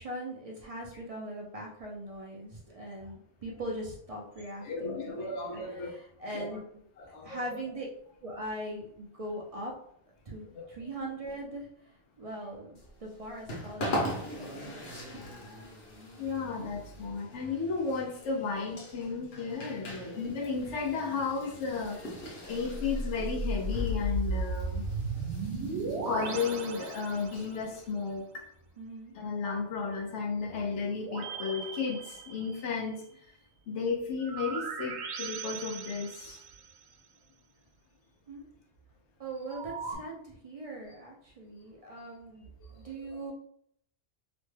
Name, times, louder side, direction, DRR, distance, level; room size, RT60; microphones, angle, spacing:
voice 1, 0.0-6.7 7.2-7.9 8.2-9.7 10.3-14.8 28.8-29.2 38.3-38.4 39.2-43.3, right 1 dB, 45° right, -2 dB, 0.5 m, -41 dB
voice 2, 4.6-5.9 6.3-6.6 7.0-7.4 10.5-10.7 14.6-14.7 15.2-15.7 16.2-22.0 22.4-24.9 26.1-28.4 29.1-33.0 33.7-36.4, left 4 dB, 85° left, -1 dB, 1.0 m, -34 dB
sound 1, 12.7-27.9, equal, 65° left, 1.2 m, -41 dB
sound 2, 22.6-27.7 31.0-32.8 34.2-36.8 39.5-40.0, right 2 dB, 80° right, 0.9 m, -36 dB
3.0 x 2.1 x 3.2 m, 0.67 s
omnidirectional pair, 1.1 m